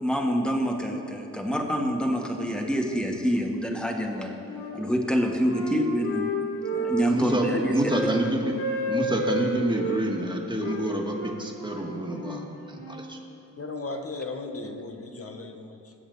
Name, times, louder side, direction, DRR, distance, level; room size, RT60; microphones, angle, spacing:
voice 1, 0.0-4.4 4.7-6.3 6.7-8.1, equal, ahead, 1 dB, 2.2 m, -26 dB
Wind instrument woodwind instrument, 3.9-4.7 5.1-8.2 8.5-10.0 10.6-13.1, equal, 70° left, 3.1 m, -32 dB
voice 2, 7.0-8.6 8.9-13.2, right 1 dB, 15° right, 0 dB, 2.2 m, -28 dB
voice 3, 13.6-15.9, left 3 dB, 40° left, 4 dB, 1.7 m, -36 dB
21.0 x 7.8 x 4.1 m, 2.9 s
supercardioid pair, 50°, 35 cm